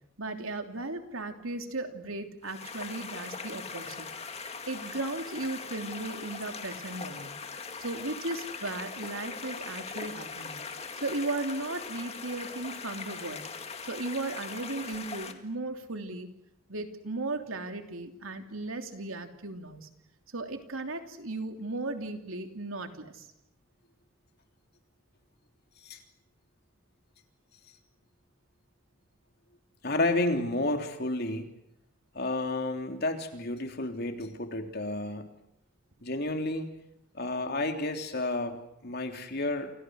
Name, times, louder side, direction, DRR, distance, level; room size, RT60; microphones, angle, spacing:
voice 1, 0.2-4.1 4.7-7.3 7.8-10.6 11.0-13.4 13.8-16.3 16.7-19.9 20.3-23.3, right 2 dB, 75° right, 6 dB, 3.2 m, -36 dB
sound 1, 2.4-15.3, left 5 dB, 30° left, 2.1 m, -41 dB
voice 2, 4.1-4.5 25.8-26.0 29.8-31.5 32.1-35.3 36.0-36.7 37.1-39.7, left 2 dB, 50° left, 5 dB, 3.4 m, -31 dB
29.5 x 27.5 x 6.5 m, 0.78 s
head